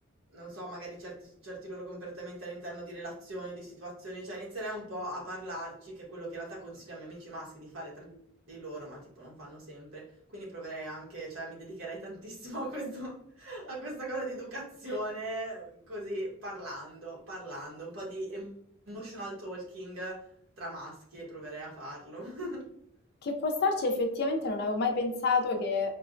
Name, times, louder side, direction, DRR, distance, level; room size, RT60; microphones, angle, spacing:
voice 1, 0.3-8.2 8.5-10.1 10.3-18.6 18.9-20.2 20.6-22.7, right 1 dB, 80° right, -4 dB, 1.3 m, -40 dB
voice 2, 23.2-25.9, left 3 dB, 50° left, 4 dB, 0.5 m, -28 dB
4.4 x 2.1 x 2.5 m, 0.68 s
head